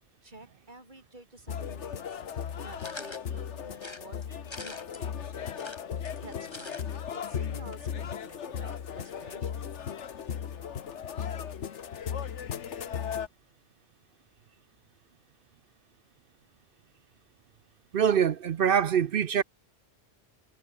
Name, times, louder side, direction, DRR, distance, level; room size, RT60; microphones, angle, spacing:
voice 1, 0.2-2.2 2.6-5.7 6.2-9.8, right 2 dB, 40° right, 5.2 m, -50 dB
sound 1, 1.5-13.3, left 8 dB, 85° left, 1.4 m, -36 dB
sound 2, 2.8-3.3 3.8-5.0 5.5-6.8 7.1-7.2 7.4-7.5, left 2 dB, 25° left, 2.0 m, -44 dB
voice 2, 17.9-19.4, right 8 dB, 60° right, 0.7 m, -24 dB
omnidirectional pair, 1.2 m